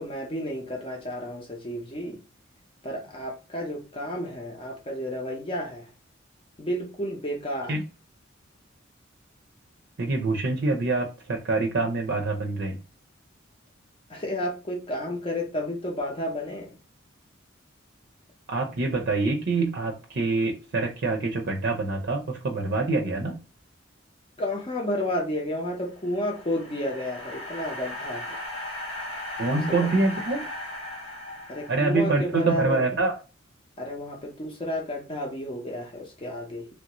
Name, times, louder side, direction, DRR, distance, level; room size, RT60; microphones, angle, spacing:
voice 1, 0.0-2.2 2.8-5.9 6.6-7.8 14.1-16.8 24.4-28.4 29.5-29.9 31.5-32.8 33.8-36.7, left 1 dB, 30° left, 0 dB, 0.7 m, -31 dB
voice 2, 10.0-12.8 18.5-23.4 29.4-30.4 31.7-33.1, right 3 dB, 55° right, 2 dB, 0.6 m, -25 dB
sound 1, 25.9-32.3, left 1 dB, 85° left, 0.9 m, -37 dB
3.2 x 2.6 x 2.9 m, 0.32 s
head